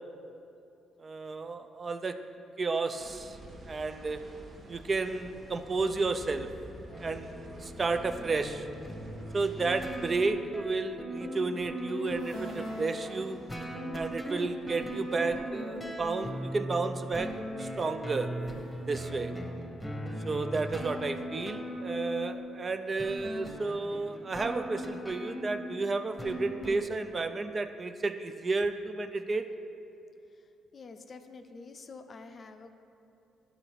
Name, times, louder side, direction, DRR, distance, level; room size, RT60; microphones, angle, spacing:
voice 1, 1.0-2.2 2.6-3.4 3.7-4.2 4.7-6.5 7.0-8.7 9.3-13.4 13.9-17.3 17.6-18.3 18.9-19.3 20.2-29.5, right 3 dB, 35° right, 8 dB, 0.4 m, -32 dB
sound 1, 2.9-10.3, right 1 dB, 55° right, 1.0 m, -49 dB
Dark Instrumental, 6.9-26.8, equal, 10° left, 0.9 m, -39 dB
sound 2, 11.5-15.3 18.3-19.7, right 1 dB, 85° right, 1.1 m, -55 dB
voice 2, 30.7-32.7, left 4 dB, 45° left, 7 dB, 0.5 m, -47 dB
11.0 x 3.9 x 4.6 m, 2.7 s
cardioid pair, 90°, 0 cm